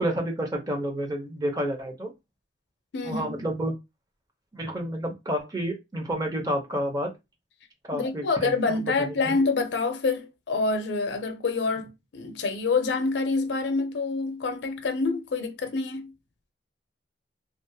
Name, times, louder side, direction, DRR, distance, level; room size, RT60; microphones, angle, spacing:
voice 1, 0.0-2.1 3.0-3.7 4.5-7.1 7.9-9.3, right 1 dB, 20° right, 0.5 m, -30 dB
voice 2, 2.9-3.4 7.9-16.1, left 3 dB, 70° left, 0.5 m, -27 dB
2.3 x 2.1 x 2.6 m
head